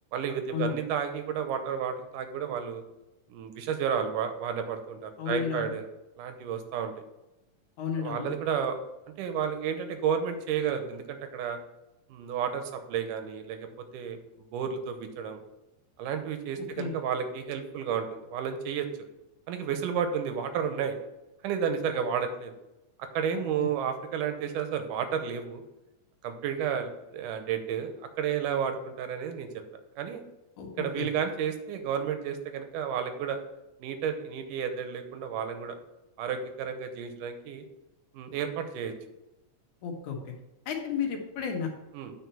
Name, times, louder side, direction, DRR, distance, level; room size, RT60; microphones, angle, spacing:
voice 1, 0.1-2.8 3.3-5.9 6.2-6.9 8.0-8.8 9.2-11.6 12.1-14.2 14.5-15.4 16.0-18.9 19.5-21.0 21.4-22.5 23.0-25.6 26.2-29.5 30.0-30.2 30.8-33.4 33.8-35.8 36.2-37.6 38.1-38.9 41.9-42.1, right 7 dB, 85° right, 7 dB, 2.4 m, -31 dB
voice 2, 5.2-5.7 7.8-8.3 16.8-16.9 23.3-23.7 30.6-31.1 39.8-40.3 40.7-41.7, left 7 dB, 70° left, 1 dB, 2.7 m, -33 dB
9.2 x 4.4 x 5.5 m, 0.95 s
omnidirectional pair, 3.7 m